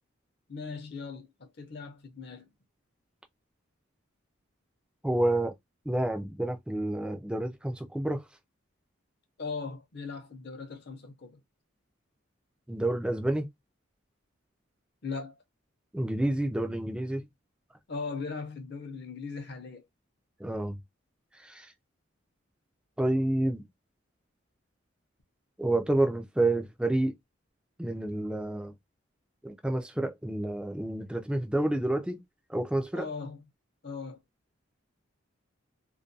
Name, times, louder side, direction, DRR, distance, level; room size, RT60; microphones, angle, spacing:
voice 1, 0.5-2.5 9.4-11.4 15.0-15.4 17.9-19.9 32.9-33.4 33.8-34.2, left 4 dB, 55° left, 0.6 m, -39 dB
voice 2, 5.0-5.5 5.9-8.2 12.7-13.5 15.9-17.2 20.4-20.8 21.4-21.7 23.0-23.6 25.6-27.2 27.8-28.7 29.4-32.2 32.5-33.1, right 1 dB, 5° right, 0.3 m, -29 dB
2.3 x 2.2 x 2.6 m
head